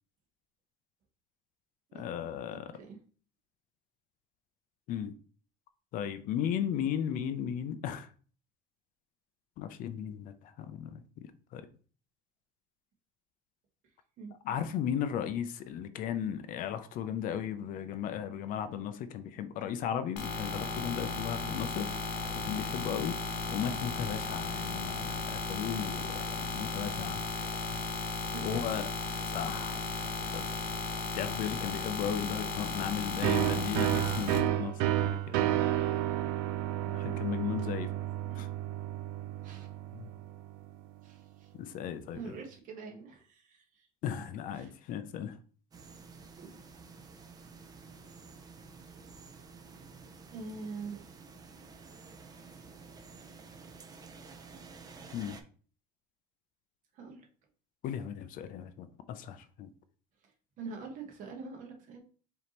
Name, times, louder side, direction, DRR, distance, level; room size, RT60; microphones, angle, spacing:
voice 1, 1.9-2.7 4.9-5.1 5.9-8.1 9.6-11.7 14.4-21.9 22.4-23.2 23.5-27.2 28.4-28.9 29.3-29.8 30.3-30.6 31.1-35.6 36.9-37.9 38.3-38.5 39.9-40.1 41.5-42.3 44.0-45.3 55.1-55.4 57.8-59.7, left 9 dB, 50° left, 0.5 m, -36 dB
sound 1, 20.2-34.4, left 4 dB, 75° left, 1.1 m, -35 dB
voice 2, 28.3-28.8 32.0-32.3 38.2-38.5 39.4-39.7 41.0-41.5 42.1-43.9 44.5-44.7 46.4-46.5 50.3-51.0 56.9-57.3 60.6-62.0, right 4 dB, 50° right, 1.1 m, -44 dB
sound 2, 33.2-40.7, right 13 dB, 85° right, 0.4 m, -31 dB
sound 3, 45.7-55.4, right 4 dB, 20° right, 0.5 m, -51 dB
5.1 x 2.8 x 2.9 m
cardioid pair, 140°, 18 cm